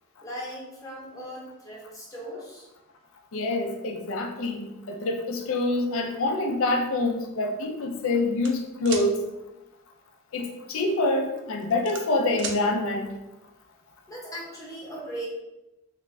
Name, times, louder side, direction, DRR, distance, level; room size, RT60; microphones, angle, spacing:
voice 1, 0.2-2.7 14.1-15.3, right 1 dB, 15° left, -5 dB, 0.8 m, -38 dB
voice 2, 3.3-9.1 10.3-13.1, left 2 dB, 65° left, 3 dB, 0.4 m, -26 dB
sound 1, 8.4-9.1 10.7-11.0 11.4-12.6, right 5 dB, 50° right, 0.4 m, -35 dB
3.3 x 2.5 x 3.1 m, 0.99 s
head